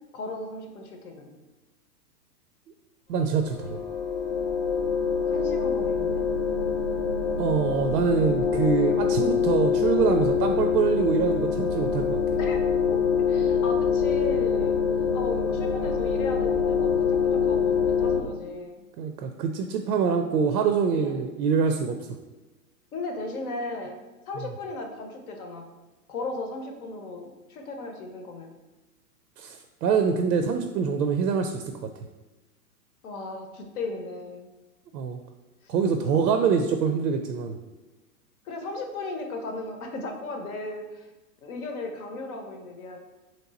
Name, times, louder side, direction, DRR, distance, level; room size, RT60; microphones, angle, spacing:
voice 1, 0.1-1.3 5.3-6.3 12.4-12.6 12.9-14.8 15.1-18.8 20.9-21.3 22.9-24.0 24.3-25.7 26.1-28.5 33.0-34.5 36.0-36.3 38.5-41.1 41.4-43.0, left 2 dB, 60° left, 4 dB, 0.8 m, -36 dB
voice 2, 3.1-3.8 7.4-12.2 19.0-22.0 29.4-31.9 34.9-35.2 35.7-37.6, right 6 dB, 75° right, 6 dB, 0.5 m, -25 dB
sound 1, 3.3-18.2, left 6 dB, 30° left, 0.5 m, -25 dB
3.2 x 3.0 x 3.9 m, 1.1 s
hypercardioid pair, 125°, 49 cm